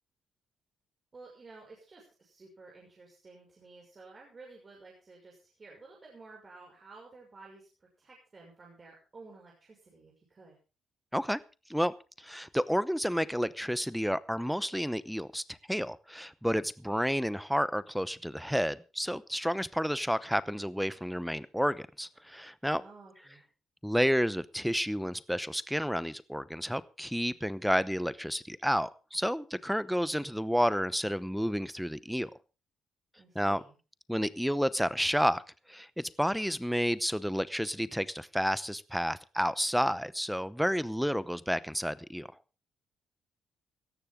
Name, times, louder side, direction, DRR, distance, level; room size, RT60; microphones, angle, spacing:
voice 1, 1.1-10.6 22.7-23.4 33.2-33.8, right 3 dB, 35° right, -1 dB, 6.1 m, -53 dB
voice 2, 11.7-22.8 23.8-32.3 33.3-33.6 34.1-35.4 35.7-42.3, equal, ahead, 17 dB, 0.8 m, -30 dB
17.5 x 13.5 x 3.7 m, 0.33 s
cardioid pair, 90°, 0 cm